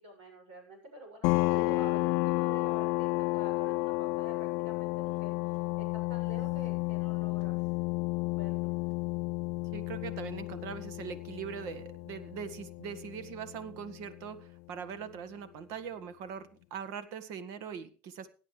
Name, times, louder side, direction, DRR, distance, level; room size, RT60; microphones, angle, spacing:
voice 1, 0.0-7.7 8.2-8.7, equal, 90° right, 3 dB, 7.4 m, -48 dB
sound 1, 1.2-14.5, left 23 dB, 65° left, 0.5 m, -32 dB
voice 2, 5.1-5.5 9.7-18.3, right 7 dB, 65° right, 11 dB, 1.7 m, -42 dB
17.0 x 10.5 x 3.4 m, 0.37 s
supercardioid pair, 100°, 5 cm